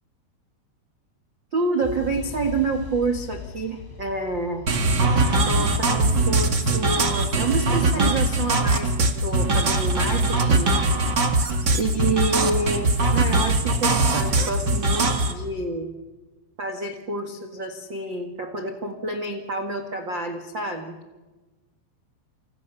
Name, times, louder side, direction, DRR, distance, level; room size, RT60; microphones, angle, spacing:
voice 1, 1.5-4.7 5.5-10.7 11.7-15.9 16.6-21.0, right 3 dB, 75° right, 6 dB, 1.0 m, -28 dB
sound 1, 1.8-9.7, left 4 dB, 70° left, 8.0 m, -41 dB
sound 2, 4.7-15.3, right 2 dB, 50° right, 1.2 m, -21 dB
30.0 x 28.0 x 6.9 m, 1.2 s
omnidirectional pair, 5.6 m